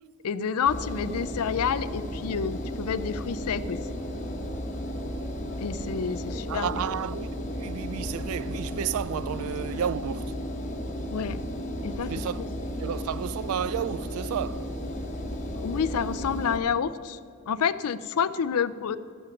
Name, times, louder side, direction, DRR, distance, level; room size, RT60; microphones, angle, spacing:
voice 1, 0.2-3.8 5.6-6.9 11.1-11.4 11.8-12.5 15.6-17.2 17.5-19.0, left 7 dB, 80° left, 0.5 m, -29 dB
Engine, 0.7-16.6, equal, 35° left, 1.2 m, -34 dB
sound 1, 3.6-9.2, left 2 dB, ahead, 1.6 m, -49 dB
voice 2, 6.5-7.3 7.6-10.4 12.1-12.5 12.8-14.7, right 9 dB, 70° right, 0.3 m, -31 dB
14.5 x 5.9 x 7.0 m
head